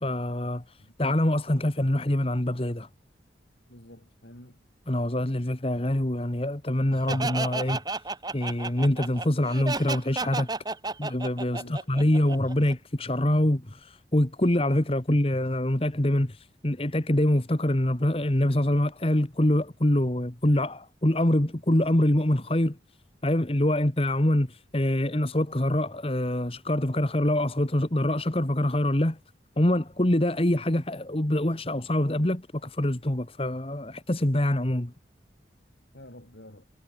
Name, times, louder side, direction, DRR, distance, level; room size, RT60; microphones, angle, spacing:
voice 1, 0.0-0.6 1.0-2.9 4.9-7.8 8.3-10.5 11.0-22.8 23.2-29.2 29.6-34.9, left 1 dB, 30° left, 1.5 m, -25 dB
voice 2, 3.7-4.6 11.5-12.2 35.9-36.6, left 1 dB, 70° left, 4.9 m, -49 dB
Laughter, 7.1-12.7, right 3 dB, 20° right, 1.4 m, -32 dB
head